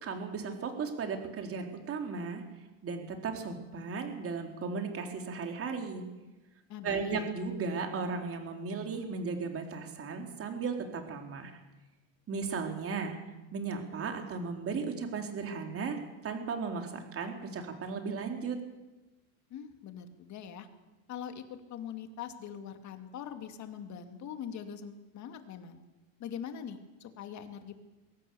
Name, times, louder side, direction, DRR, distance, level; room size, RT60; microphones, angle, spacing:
voice 1, 0.0-2.4 2.8-6.0 6.8-11.5 12.3-13.2 13.5-16.0 16.2-18.6, right 5 dB, 35° right, 4 dB, 3.8 m, -36 dB
voice 2, 6.7-7.3 19.5-20.7 21.1-25.8 26.2-27.8, left 8 dB, 40° left, 7 dB, 2.5 m, -42 dB
22.0 x 17.5 x 7.1 m, 1.1 s
supercardioid pair, 120°, 41 cm